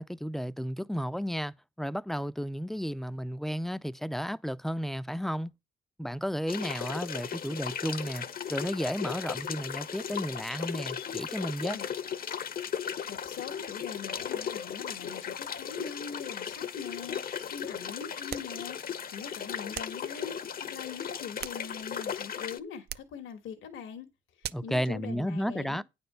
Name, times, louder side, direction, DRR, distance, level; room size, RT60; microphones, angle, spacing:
voice 1, 0.0-5.5 6.0-11.8 24.5-25.8, equal, ahead, 0.4 m, -33 dB
sound 1, 6.5-22.6, left 8 dB, 50° left, 0.8 m, -36 dB
voice 2, 13.1-24.1 24.4-25.8, left 7 dB, 80° left, 1.5 m, -42 dB
sound 2, 18.3-18.6 19.7-20.1 21.1-22.0 22.9-23.2 24.4-24.8, right 11 dB, 55° right, 0.4 m, -41 dB
9.2 x 4.3 x 6.6 m
cardioid pair, 90°, 20 cm